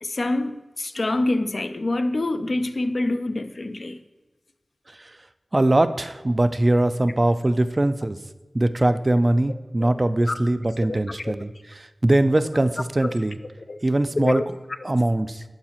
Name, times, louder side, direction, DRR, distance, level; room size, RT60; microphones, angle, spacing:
voice 1, 0.0-4.0 9.8-9.9 10.3-10.4 10.8-11.3 13.0-13.1 13.7-13.8 14.2-14.4, left 2 dB, 60° left, 0.4 m, -26 dB
voice 2, 5.5-8.2 8.5-13.4 13.8-14.6 14.8-15.4, right 1 dB, 35° right, 0.3 m, -22 dB
11.5 x 4.7 x 2.9 m
wide cardioid pair, 65°, 0 cm